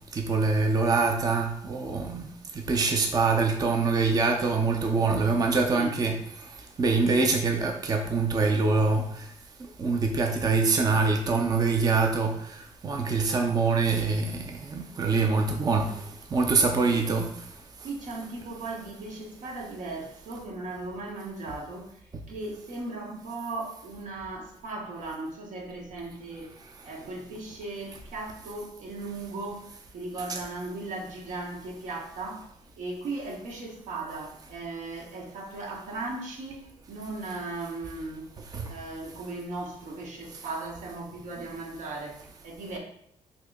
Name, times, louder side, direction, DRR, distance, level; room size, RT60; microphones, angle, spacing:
voice 1, 0.1-2.3 2.5-6.1 6.8-9.2 9.8-16.0 16.3-17.3 38.5-38.7, right 4 dB, 30° right, 3 dB, 0.4 m, -24 dB
voice 2, 17.8-26.5 26.8-32.5 32.8-42.8, right 2 dB, 80° right, 0 dB, 0.9 m, -37 dB
3.0 x 2.8 x 3.5 m, 0.69 s
cardioid pair, 105°, 13 cm